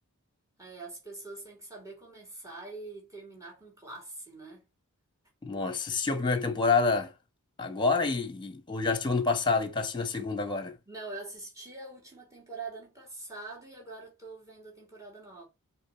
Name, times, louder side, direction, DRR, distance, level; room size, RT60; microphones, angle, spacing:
voice 1, 0.6-4.7 10.9-15.4, right 3 dB, 15° right, 3.7 m, -44 dB
voice 2, 5.4-7.1 7.6-10.7, left 4 dB, 20° left, 1.3 m, -28 dB
6.6 x 4.7 x 5.8 m
head